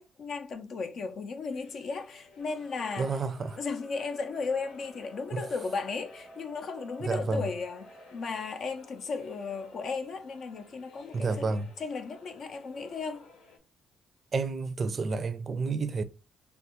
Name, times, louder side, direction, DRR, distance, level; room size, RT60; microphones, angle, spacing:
voice 1, 0.0-3.2 3.6-7.9 8.1-11.5 11.8-13.2, left 4 dB, 60° left, 0.5 m, -35 dB
sound 1, 1.5-13.6, left 4 dB, 90° left, 0.9 m, -57 dB
sound 2, 2.4-8.4, right 1 dB, 5° left, 0.8 m, -54 dB
voice 2, 3.0-3.6 5.3-5.4 7.0-7.5 11.1-11.7 14.3-16.0, right 4 dB, 40° right, 0.4 m, -30 dB
3.4 x 2.3 x 2.9 m
cardioid pair, 90°, 0 cm